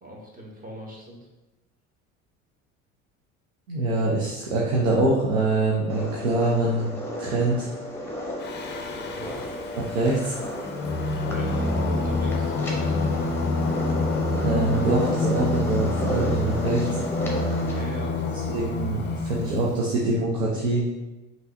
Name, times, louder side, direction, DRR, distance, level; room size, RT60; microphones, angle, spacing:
voice 1, 0.0-1.3 9.1-9.4 11.2-11.6 11.9-13.0 17.5-18.2, right 1 dB, 20° right, -2 dB, 1.4 m, -41 dB
voice 2, 3.7-6.9 7.2-7.7 9.9-10.3 14.4-17.0 18.5-20.8, right 2 dB, 70° right, -4 dB, 0.9 m, -24 dB
sound 1, 5.9-17.9, equal, 5° left, 1.0 m, -34 dB
Singing, 8.4-19.7, left 3 dB, 25° left, 0.5 m, -27 dB
5.5 x 3.1 x 2.7 m, 1.0 s
figure-of-eight pair, 65°, 40 cm